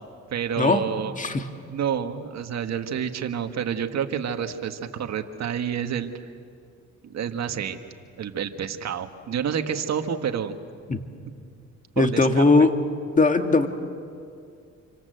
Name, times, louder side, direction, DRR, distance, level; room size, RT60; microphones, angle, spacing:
voice 1, 0.3-1.1 1.7-6.1 7.0-7.8 8.2-10.6 12.0-12.4, right 8 dB, 60° right, 6 dB, 1.9 m, -29 dB
voice 2, 1.2-1.5 10.9-11.0 12.0-12.7 13.2-13.7, left 3 dB, 25° left, 6 dB, 2.0 m, -19 dB
28.0 x 25.5 x 8.0 m, 2.3 s
cardioid pair, 90°, 30 cm